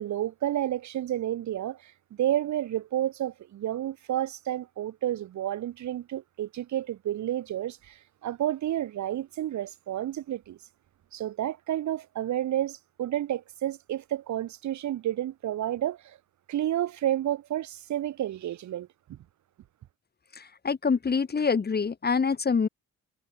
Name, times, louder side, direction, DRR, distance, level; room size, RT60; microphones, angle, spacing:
voice 1, 0.0-1.9 2.2-10.6 11.1-16.2 16.5-19.2, right 12 dB, 70° right, 1.7 m, -30 dB
voice 2, 20.3-22.7, left 5 dB, 30° left, 2.1 m, -26 dB
cardioid pair, 90°, 30 cm